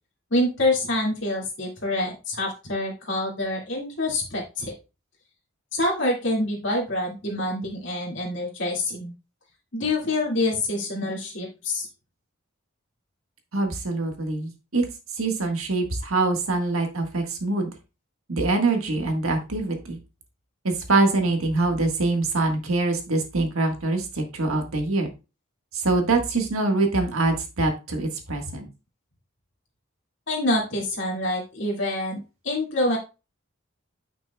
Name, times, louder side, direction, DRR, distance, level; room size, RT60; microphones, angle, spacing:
voice 1, 0.3-4.7 5.7-9.1 9.7-11.9 30.3-33.0, left 1 dB, 60° left, -2 dB, 2.2 m, -26 dB
voice 2, 13.5-14.8 15.2-17.7 18.3-20.0 20.6-25.1 25.7-28.7, right 2 dB, 90° right, 4 dB, 1.6 m, -24 dB
9.3 x 6.0 x 2.3 m, 0.29 s
head